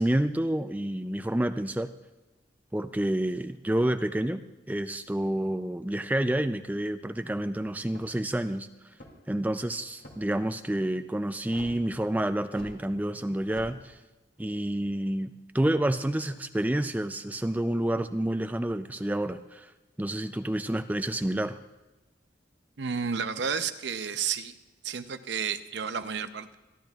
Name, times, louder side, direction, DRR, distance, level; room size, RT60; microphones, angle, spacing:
voice 1, 0.0-1.9 2.7-4.4 4.7-8.7 9.3-14.0 14.4-19.7 20.0-21.6, right 1 dB, 10° right, 9 dB, 0.4 m, -29 dB
sound 1, 7.8-8.3 8.9-9.4 10.0-10.4 11.5-11.7 12.5-12.8 13.5-13.7, equal, 70° left, 2.6 m, -46 dB
voice 2, 22.8-24.6 24.8-26.5, right 6 dB, 70° right, 10 dB, 0.6 m, -31 dB
25.5 x 10.5 x 2.4 m, 1.1 s
head